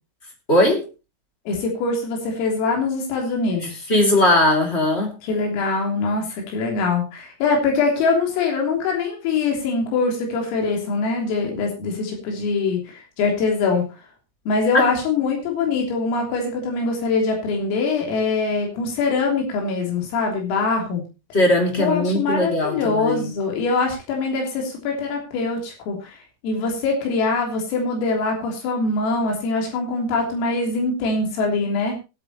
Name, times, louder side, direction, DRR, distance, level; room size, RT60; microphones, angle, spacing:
voice 1, 0.5-0.9 3.9-5.2 14.7-14.9 21.3-23.3, left 1 dB, 25° left, 2 dB, 1.4 m, -19 dB
voice 2, 1.5-3.8 5.2-13.9 14.5-21.0 21.8-26.2 26.4-32.0, left 4 dB, 75° left, 1 dB, 6.0 m, -23 dB
22.5 x 8.5 x 3.1 m, 0.28 s
omnidirectional pair, 6.0 m